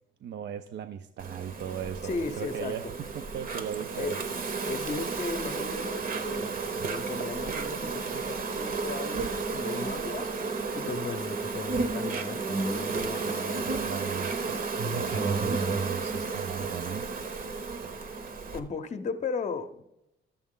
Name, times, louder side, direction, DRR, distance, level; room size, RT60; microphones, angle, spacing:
voice 1, 0.2-4.2 13.7-14.3 14.9-17.1, right 8 dB, 60° right, 9 dB, 0.5 m, -37 dB
Insect, 1.2-18.6, right 4 dB, 45° right, 0.8 m, -32 dB
voice 2, 2.0-2.8 4.0-4.2 4.6-13.8 18.0-19.9, left 4 dB, 35° left, 10 dB, 0.7 m, -36 dB
11.5 x 7.1 x 3.7 m, 0.89 s
cardioid pair, 90°, 20 cm